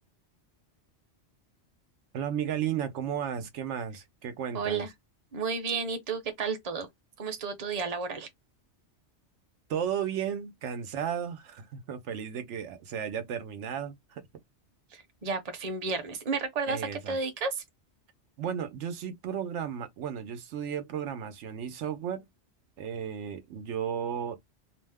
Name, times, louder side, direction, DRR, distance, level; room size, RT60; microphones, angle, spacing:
voice 1, 2.1-4.8 9.7-14.2 16.7-17.2 18.4-22.3 22.8-24.4, right 8 dB, 85° right, 1.0 m, -34 dB
voice 2, 4.5-4.9 5.3-6.9 7.2-8.3 14.9-17.6, right 4 dB, 40° right, 0.7 m, -32 dB
2.6 x 2.1 x 3.4 m
omnidirectional pair, 1.2 m